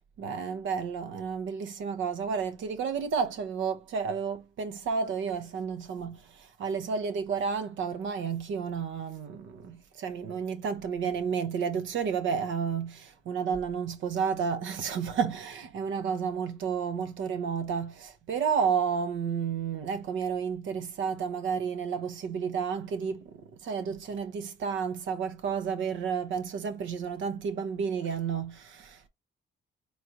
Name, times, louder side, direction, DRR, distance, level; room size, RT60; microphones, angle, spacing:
voice 1, 0.2-6.2 6.6-23.3 23.6-29.1, right 6 dB, 75° right, 0.9 m, -31 dB
4.2 x 3.1 x 2.6 m
cardioid pair, 90°, 20 cm